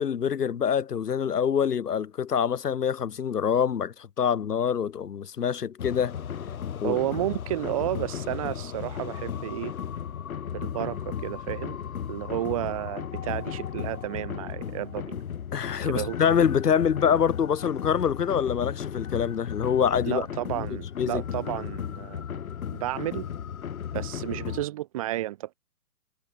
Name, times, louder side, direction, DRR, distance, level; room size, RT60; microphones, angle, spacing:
voice 1, 0.0-6.1 6.8-7.0 15.5-20.3 20.5-20.7 21.0-21.2, left 8 dB, 80° left, 0.9 m, -25 dB
sound 1, 5.8-24.6, left 8 dB, 60° left, 1.6 m, -35 dB
voice 2, 6.8-9.7 10.5-11.8 12.1-15.2 15.9-16.2 20.1-22.4 22.7-23.3 23.9-25.5, right 15 dB, 25° right, 0.7 m, -32 dB
figure-of-eight pair, 125°, 47 cm